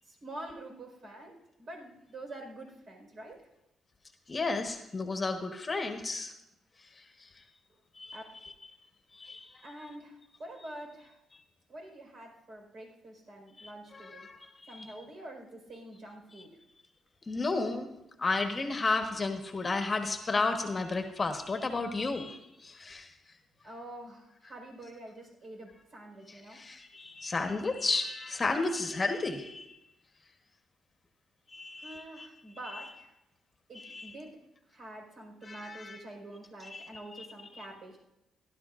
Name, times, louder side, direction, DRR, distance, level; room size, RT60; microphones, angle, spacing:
voice 1, 0.0-3.5 7.7-7.8 8.1-8.2 9.6-11.2 11.7-14.3 14.7-16.6 23.6-26.6 31.8-33.1 33.7-34.4 34.7-38.0, right 1 dB, 50° right, 1 dB, 4.5 m, -47 dB
voice 2, 4.3-6.3 7.0-7.4 8.0-8.2 8.4-8.5 9.1-9.7 13.6-14.4 17.3-17.9 18.2-23.1 26.5-29.8 31.5-32.3 32.7-32.9 33.8-34.1 35.5-36.0 36.7-37.3, left 3 dB, 30° left, 5 dB, 1.2 m, -33 dB
16.5 x 12.0 x 2.5 m, 0.89 s
cardioid pair, 90°, 0 cm